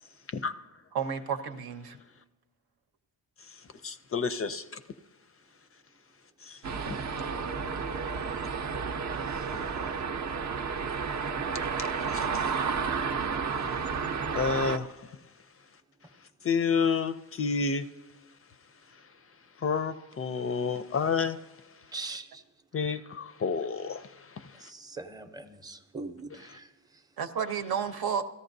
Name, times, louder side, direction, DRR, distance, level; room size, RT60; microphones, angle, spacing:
voice 1, 0.9-2.0 27.2-28.2, right 7 dB, 80° right, 8 dB, 0.9 m, -31 dB
voice 2, 3.8-4.6 6.4-6.6 6.9-7.0 12.1-12.4 14.3-14.9 16.4-17.8 19.6-21.4 22.7-24.0, left 5 dB, 40° left, 11 dB, 0.4 m, -29 dB
sound 1, 6.6-14.8, right 5 dB, 50° right, 0.6 m, -31 dB
voice 3, 21.9-22.4 24.5-27.1, right 3 dB, 10° right, 6 dB, 0.6 m, -42 dB
17.5 x 13.5 x 2.6 m, 1.2 s
wide cardioid pair, 140°, 38 cm